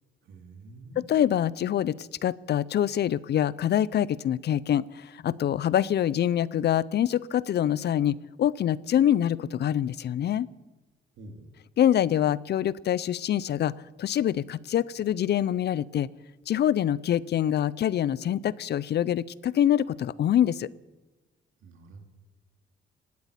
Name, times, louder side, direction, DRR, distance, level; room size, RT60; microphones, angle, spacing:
voice 1, 0.2-1.1 11.2-11.5 21.6-22.0, right 2 dB, 80° right, 4 dB, 2.7 m, -47 dB
voice 2, 1.0-10.5 11.8-13.7 14.0-16.1 16.5-20.7, left 10 dB, 55° left, 21 dB, 0.6 m, -25 dB
17.0 x 8.3 x 9.9 m, 1.2 s
cardioid pair, 90°, 20 cm